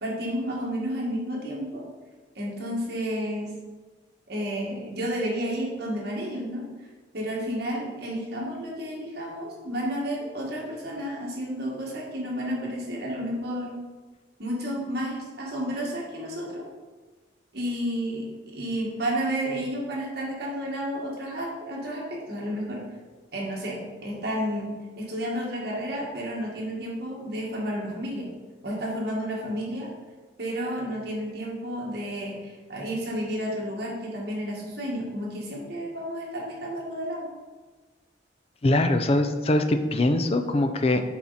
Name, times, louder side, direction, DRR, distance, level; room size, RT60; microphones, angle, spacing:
voice 1, 0.0-1.8 2.4-3.5 4.3-6.6 7.1-13.7 14.4-16.7 17.5-18.3 18.5-22.8 23.3-28.3 28.6-29.9 30.4-37.3, equal, 55° right, -3 dB, 1.8 m, -31 dB
voice 2, 38.6-41.0, left 1 dB, 30° left, 7 dB, 0.5 m, -22 dB
7.3 x 4.4 x 4.1 m, 1.3 s
head